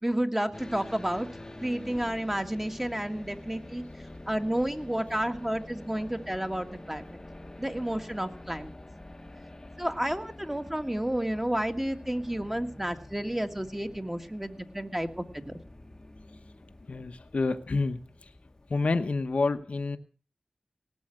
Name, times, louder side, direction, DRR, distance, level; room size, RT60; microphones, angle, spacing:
voice 1, 0.0-1.3 1.6-3.8 4.3-7.2 7.6-8.7 9.8-15.6, right 1 dB, 15° right, 5 dB, 2.0 m, -31 dB
sound 1, 0.5-18.8, left 1 dB, 25° left, 1.2 m, -47 dB
voice 2, 16.9-18.0 18.7-20.0, left 3 dB, 70° left, 8 dB, 1.1 m, -28 dB
18.0 x 7.5 x 7.8 m, 0.38 s
cardioid pair, 45°, 2 cm